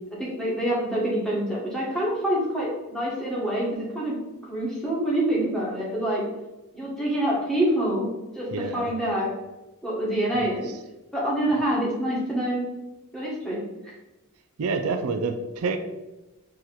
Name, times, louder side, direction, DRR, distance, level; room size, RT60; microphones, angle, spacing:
voice 1, 0.2-4.2 4.4-6.2 6.7-8.1 8.3-9.4 9.8-10.7 11.1-12.7 13.1-13.6, right 1 dB, 5° left, -6 dB, 1.3 m, -26 dB
voice 2, 8.5-8.9 10.3-10.5 14.6-15.8, right 4 dB, 75° right, 7 dB, 0.4 m, -28 dB
4.4 x 2.9 x 3.9 m, 1.0 s
head